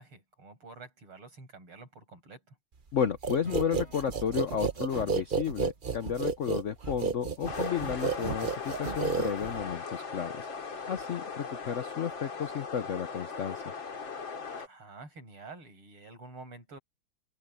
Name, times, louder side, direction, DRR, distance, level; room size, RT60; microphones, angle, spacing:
voice 1, 0.0-2.6 14.6-16.8, right 3 dB, 80° right, 7.9 m, -49 dB
voice 2, 2.9-10.5 10.9-13.6, left 8 dB, 80° left, 0.6 m, -32 dB
sound 1, 3.2-9.7, right 5 dB, 50° right, 0.6 m, -32 dB
Acoustic guitar / Strum, 3.4-7.5, equal, 25° right, 5.3 m, -53 dB
sound 2, 7.5-14.7, left 5 dB, 60° left, 3.2 m, -39 dB
omnidirectional pair, 2.4 m